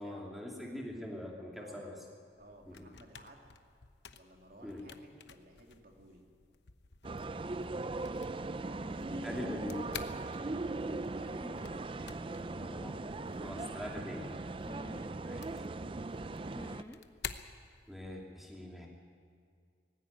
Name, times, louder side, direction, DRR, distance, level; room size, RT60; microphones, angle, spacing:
voice 1, 0.0-2.0 2.7-2.9 4.6-4.8 9.2-9.8 12.5-13.0 13.4-14.3 15.2-15.5 17.9-18.9, left 1 dB, ahead, -1 dB, 2.8 m, -42 dB
voice 2, 1.6-2.0 2.4-3.6 4.1-6.2 10.7-11.3 14.6-15.4, right 1 dB, 55° right, 1 dB, 2.9 m, -57 dB
sound 1, 2.3-18.3, left 7 dB, 75° left, 0.9 m, -52 dB
sound 2, 7.0-16.8, right 2 dB, 30° right, 0.4 m, -39 dB
sound 3, 8.8-9.5 11.2-11.7 13.3-13.9 14.6-15.1 16.5-17.0 17.3-17.6, equal, 15° left, 1.1 m, -50 dB
19.0 x 16.0 x 9.4 m, 2.2 s
head